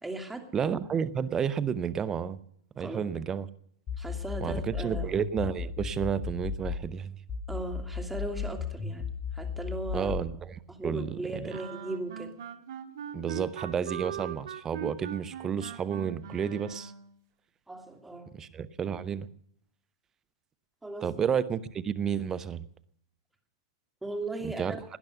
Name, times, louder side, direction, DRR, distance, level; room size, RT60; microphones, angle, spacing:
voice 1, 0.0-0.5 2.8-3.0 4.0-5.1 7.5-9.1 9.3-10.1 10.7-12.3 17.7-18.3 20.8-21.1 24.0-24.8, right 2 dB, 5° right, 4 dB, 2.7 m, -37 dB
voice 2, 0.5-2.4 2.8-3.5 4.4-7.2 9.9-11.5 13.1-16.9 18.3-19.3 21.0-22.7 24.4-24.8, right 7 dB, 20° right, 18 dB, 0.9 m, -31 dB
sound 1, 3.9-6.9 7.3-10.3, left 6 dB, 30° left, 1.8 m, -35 dB
sound 2, 11.5-17.1, right 9 dB, 65° right, 1.6 m, -40 dB
18.5 x 10.5 x 6.7 m, 0.68 s
hypercardioid pair, 115°, 2 cm